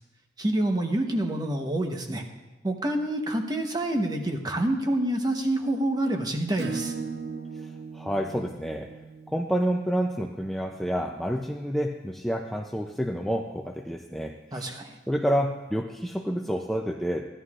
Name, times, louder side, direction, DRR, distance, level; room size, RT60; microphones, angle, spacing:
voice 1, 0.4-2.3 2.6-6.9 14.5-15.0, right 1 dB, 20° right, 3 dB, 0.9 m, -27 dB
Acoustic guitar / Strum, 6.6-11.8, right 5 dB, 55° right, 0.7 m, -39 dB
voice 2, 7.5-8.9 9.3-14.7 15.1-17.3, equal, ahead, 1 dB, 0.4 m, -29 dB
15.5 x 11.0 x 2.4 m, 1.2 s
head